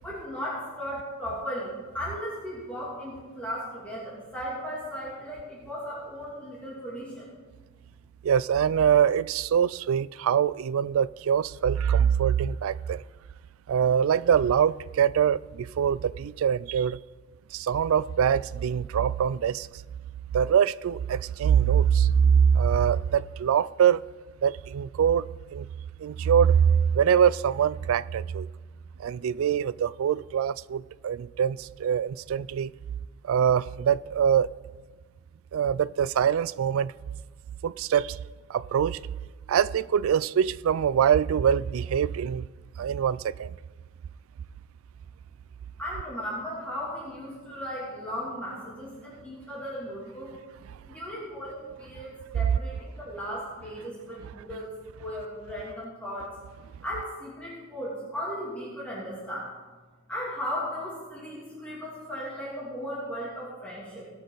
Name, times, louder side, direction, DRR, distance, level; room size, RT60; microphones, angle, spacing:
voice 1, 0.0-7.3 45.8-50.3 50.9-56.3 56.8-59.5 60.1-64.1, equal, 5° left, 2.6 m, -36 dB
voice 2, 8.2-13.0 13.7-17.0 17.5-19.7 20.3-24.0 24.4-25.7 26.0-28.5 29.0-32.7 33.2-34.5 35.5-36.9 37.6-38.2 38.5-39.0 39.5-42.5 42.8-43.5, right 8 dB, 75° right, 0.3 m, -24 dB
19.0 x 7.1 x 3.9 m
head